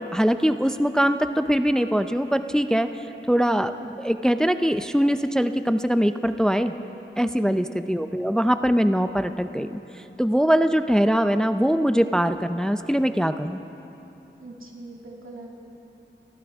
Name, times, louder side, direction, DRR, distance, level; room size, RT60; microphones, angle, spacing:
voice 1, 0.0-6.7 7.2-13.6, equal, 5° left, 9 dB, 0.5 m, -22 dB
voice 2, 7.2-7.5 7.9-8.0 14.4-15.5, right 2 dB, 85° right, -2 dB, 2.4 m, -41 dB
28.5 x 14.0 x 3.5 m, 2.9 s
wide cardioid pair, 70°, 20 cm